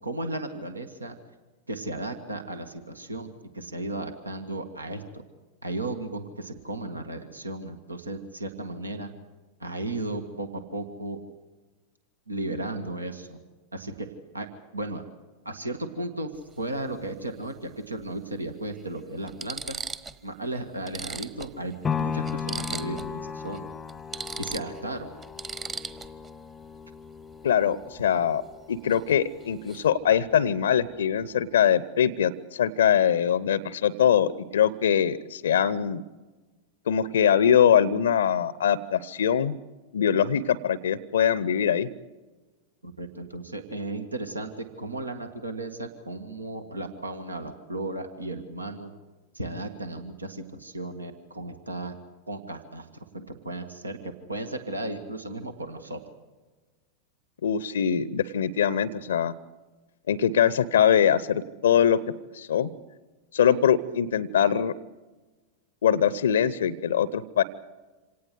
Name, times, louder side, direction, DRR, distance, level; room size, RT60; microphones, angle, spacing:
voice 1, 0.0-1.2 1.7-3.3 3.5-5.2 5.6-9.1 9.6-11.2 12.3-13.4 13.7-15.0 15.5-16.3 16.6-19.8 20.2-23.7 24.4-25.1 42.8-48.9 49.3-52.0 52.3-56.0, right 2 dB, 80° right, 8 dB, 1.7 m, -35 dB
sound 1, 16.3-16.5 18.0-18.1 18.8-18.9 19.3-20.2 20.5-20.6 20.9-23.2 23.4-23.6 23.9-26.3 28.9-29.1 29.4-29.9, right 4 dB, 20° right, 1.3 m, -38 dB
sound 2, 21.8-30.0 30.4-30.5, left 6 dB, 20° left, 0.7 m, -36 dB
voice 2, 27.4-28.4 28.7-36.0 36.9-39.6 39.9-41.9 57.4-59.3 60.1-62.0 62.3-62.7 63.3-64.7 65.8-67.4, left 8 dB, 65° left, 20 dB, 0.7 m, -22 dB
27.0 x 18.0 x 8.1 m, 1.2 s
figure-of-eight pair, 90°, 0 cm